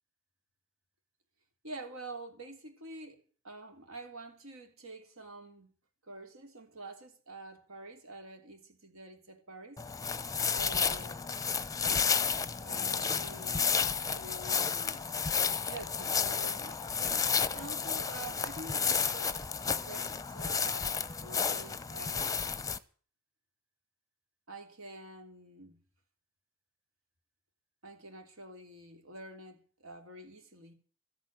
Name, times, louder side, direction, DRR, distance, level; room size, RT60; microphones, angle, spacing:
voice 1, 1.6-5.7 6.0-9.8 10.5-11.3 12.6-15.1 15.7-20.9 21.2-22.5 24.5-25.8 27.8-30.7, right 2 dB, 80° right, 3.4 m, -47 dB
sound 1, 9.8-22.8, left 6 dB, 15° left, 0.7 m, -32 dB
13.5 x 8.5 x 9.3 m
head